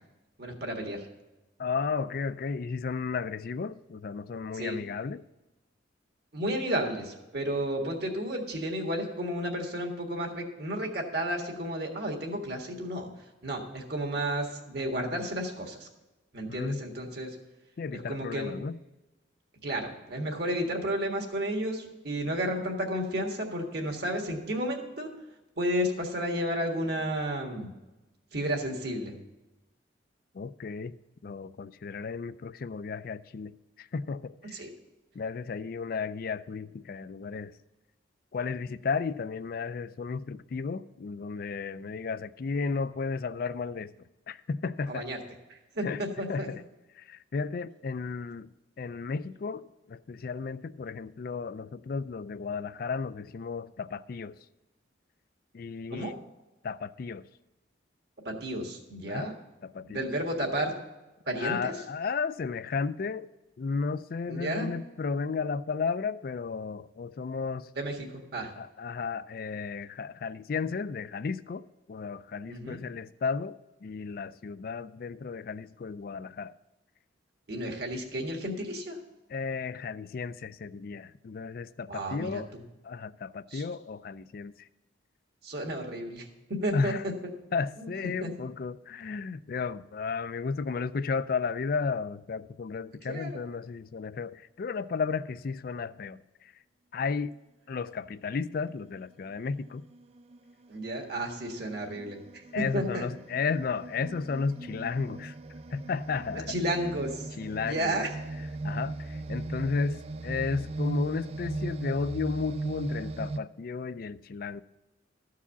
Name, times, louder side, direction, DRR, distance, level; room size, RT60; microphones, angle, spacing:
voice 1, 0.4-1.0 4.5-4.8 6.3-13.1 13.4-15.9 16.3-17.3 18.1-18.5 19.6-25.1 25.6-27.7 28.3-29.1 34.5-34.7 44.9-45.2 45.5-46.5 55.9-56.1 58.2-59.3 59.8-60.7 61.3-61.7 64.3-64.7 67.7-68.5 72.5-72.8 77.5-78.9 81.9-82.4 83.5-83.6 85.4-86.3 86.6-86.9 87.8-87.9 88.2-88.3 93.1-93.4 100.7-103.1 106.5-107.3 107.6-108.1, right 1 dB, 55° right, 1.7 m, -32 dB
voice 2, 1.6-5.2 16.5-16.9 17.8-18.8 30.3-31.0 31.2-34.6 35.1-37.5 38.3-43.9 44.3-45.1 45.8-46.0 46.3-46.6 47.0-54.4 55.5-56.2 56.6-57.3 59.1-59.3 59.6-60.0 61.4-63.3 63.6-67.7 68.6-76.5 79.3-82.5 82.8-84.7 86.7-87.0 87.5-96.5 96.9-97.4 97.7-99.8 102.5-105.4 105.7-106.5 107.4-108.0 108.6-114.6, left 5 dB, 50° left, 0.3 m, -33 dB
sound 1, 98.8-99.0 99.7-113.4, right 2 dB, 30° right, 0.3 m, -38 dB
14.0 x 4.7 x 7.1 m
head